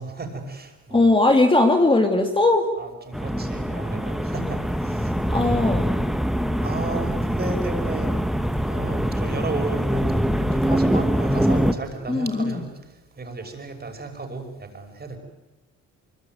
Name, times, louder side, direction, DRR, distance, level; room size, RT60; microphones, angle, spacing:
voice 1, 0.0-1.1 2.8-5.7 6.6-15.2, right 3 dB, 30° right, 4 dB, 5.8 m, -34 dB
voice 2, 0.9-2.7 5.3-5.9 12.1-12.6, left 2 dB, 15° left, 4 dB, 2.3 m, -19 dB
sound 1, 3.1-11.7, equal, ahead, 1.4 m, -24 dB
24.0 x 23.0 x 9.4 m, 1.1 s
cardioid pair, 90°, 30 cm